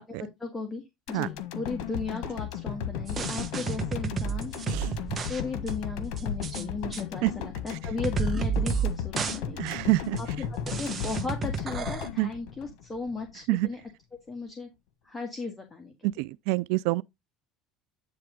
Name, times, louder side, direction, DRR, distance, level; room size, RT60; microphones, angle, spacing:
voice 1, 0.0-5.0 5.3-9.7 10.2-13.8 14.3-14.7 15.0-16.1, left 4 dB, 20° left, 1.7 m, -36 dB
sound 1, 1.1-13.3 13.7-13.8, left 9 dB, 70° left, 1.4 m, -35 dB
sound 2, 3.1-5.4 5.7-5.8 6.2-6.6 6.9-7.0 7.7-7.8 8.0-8.9 9.2-9.4 9.7-9.8 10.2-10.3 10.7-12.1, right 6 dB, 30° right, 1.3 m, -31 dB
voice 2, 9.6-10.2 12.2-12.3 13.5-13.7 16.2-17.0, right 19 dB, 75° right, 0.3 m, -26 dB
9.6 x 3.4 x 5.1 m
supercardioid pair, 110°, 0 cm